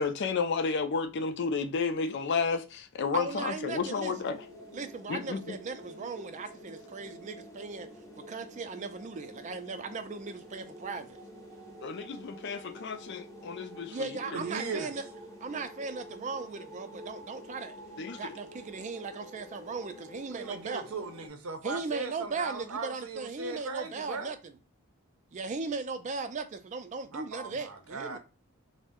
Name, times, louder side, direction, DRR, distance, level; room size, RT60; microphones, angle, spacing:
voice 1, 0.0-4.5 5.1-5.6 11.8-14.4 18.0-18.4 27.5-27.6, left 5 dB, 50° left, 0.4 m, -32 dB
voice 2, 3.1-4.1 4.7-7.9 8.3-11.2 13.9-15.0 15.4-17.8 18.2-20.8 21.6-24.5 25.3-28.2, right 4 dB, 35° right, 0.3 m, -37 dB
sound 1, 3.7-21.3, equal, 15° left, 0.6 m, -48 dB
voice 3, 14.3-15.1 20.3-24.3 27.1-28.2, right 4 dB, 75° right, 0.6 m, -38 dB
2.5 x 2.1 x 3.5 m
head